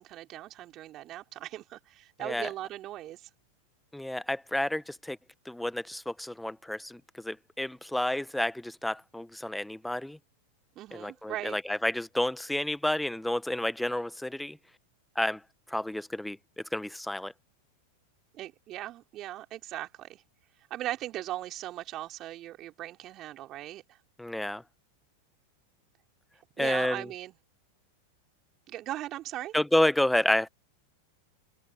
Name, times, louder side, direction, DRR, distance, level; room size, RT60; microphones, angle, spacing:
voice 1, 0.0-3.3 10.8-11.6 18.3-20.2 20.7-23.8 26.6-27.3 28.7-29.5, right 14 dB, 40° right, 4.0 m, -39 dB
voice 2, 3.9-5.2 5.5-10.2 10.9-14.6 15.2-15.4 15.7-16.4 16.7-17.3 24.2-24.6 26.6-27.1 29.5-30.5, left 1 dB, 5° left, 1.2 m, -30 dB
hypercardioid pair, 95°, 0 cm